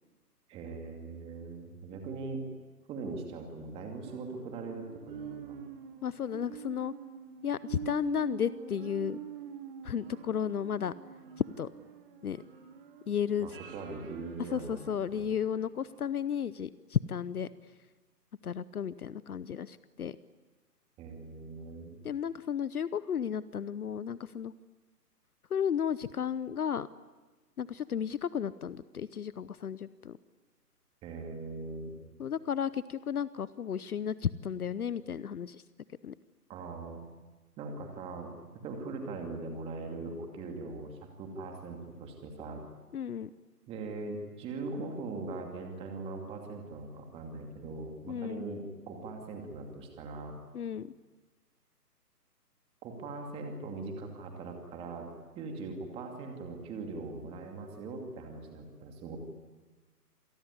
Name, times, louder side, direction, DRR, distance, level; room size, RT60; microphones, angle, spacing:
voice 1, 0.5-2.5 2.9-5.6 13.4-15.3 21.0-21.9 31.0-31.9 36.5-37.0 37.6-38.3 38.6-42.6 43.7-50.4 52.8-55.1 55.4-59.2, right 3 dB, 10° right, 3 dB, 2.5 m, -41 dB
sound 1, 4.0-15.5 15.9-16.0, right 8 dB, 35° right, 2.6 m, -46 dB
voice 2, 6.0-6.9 7.4-9.2 9.8-10.9 11.4-11.7 12.2-12.4 13.1-13.5 14.5-17.5 18.4-20.2 22.0-24.5 25.5-26.9 27.6-30.2 32.2-35.6 36.0-36.1 42.9-43.3 48.1-48.4 50.5-50.9, left 8 dB, 65° left, 17 dB, 0.9 m, -33 dB
27.0 x 19.0 x 9.7 m, 1.2 s
hypercardioid pair, 155°, 48 cm